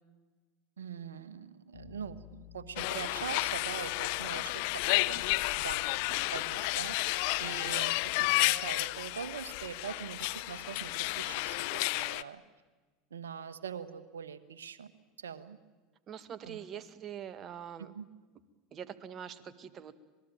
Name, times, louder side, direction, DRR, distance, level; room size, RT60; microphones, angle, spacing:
voice 1, 0.8-5.3 5.6-12.4 13.1-14.9 15.2-15.6 16.4-16.6 17.9-18.0, right 7 dB, 85° right, 13 dB, 1.4 m, -43 dB
Bass guitar, 1.7-11.6, left 12 dB, 85° left, 4.4 m, -56 dB
sound 1, 2.8-12.2, left 22 dB, 65° left, 0.7 m, -32 dB
voice 2, 16.1-17.9 18.7-20.0, right 9 dB, 40° right, 12 dB, 1.9 m, -44 dB
26.5 x 20.5 x 9.1 m, 1.3 s
hypercardioid pair, 80°, 0 cm